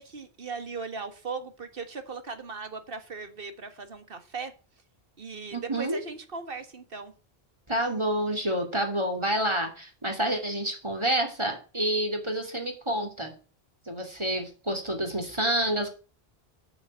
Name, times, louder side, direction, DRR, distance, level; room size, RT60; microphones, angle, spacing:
voice 1, 0.0-4.5 5.2-7.1, right 4 dB, 60° right, 9 dB, 1.7 m, -38 dB
voice 2, 5.5-6.0 7.7-13.3 13.9-15.9, right 1 dB, 25° right, 3 dB, 2.8 m, -28 dB
8.5 x 7.3 x 8.2 m, 0.36 s
omnidirectional pair, 1.1 m